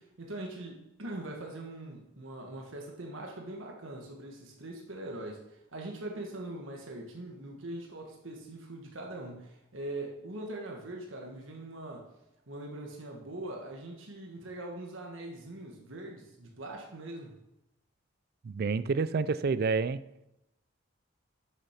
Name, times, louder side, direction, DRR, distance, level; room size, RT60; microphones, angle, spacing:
voice 1, 0.0-12.1 12.5-17.4, right 1 dB, 70° right, 1 dB, 1.5 m, -42 dB
voice 2, 18.4-20.0, right 4 dB, 50° right, 15 dB, 0.4 m, -28 dB
7.4 x 6.8 x 5.8 m, 0.88 s
head